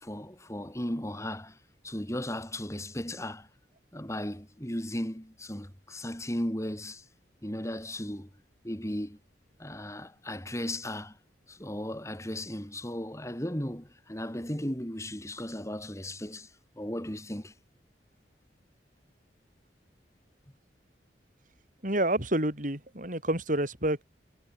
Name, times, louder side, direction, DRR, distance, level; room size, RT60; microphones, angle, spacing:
voice 1, 0.0-1.6 1.8-3.5 3.9-7.0 7.4-8.3 8.6-9.2 9.6-11.2 11.5-16.5 16.8-17.5, left 1 dB, 15° left, 3.8 m, -36 dB
voice 2, 21.8-24.0, right 1 dB, 45° right, 6.3 m, -28 dB
head